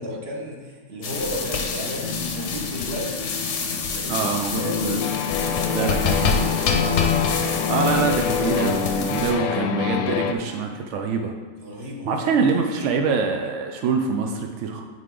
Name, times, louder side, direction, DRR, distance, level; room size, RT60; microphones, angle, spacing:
voice 1, 0.0-3.3 3.9-4.3 4.6-4.8 5.3-5.9 11.6-12.3 12.7-12.9, equal, 40° right, -2 dB, 1.3 m, -34 dB
sound 1, 1.0-9.3, left 5 dB, 55° left, 0.9 m, -27 dB
sound 2, 2.0-10.3, left 7 dB, 85° left, 1.2 m, -26 dB
voice 2, 4.1-5.0 5.7-6.5 7.7-11.3 12.1-14.8, right 5 dB, 75° right, 3 dB, 0.6 m, -25 dB
9.3 x 3.8 x 3.8 m, 1.5 s
omnidirectional pair, 1.8 m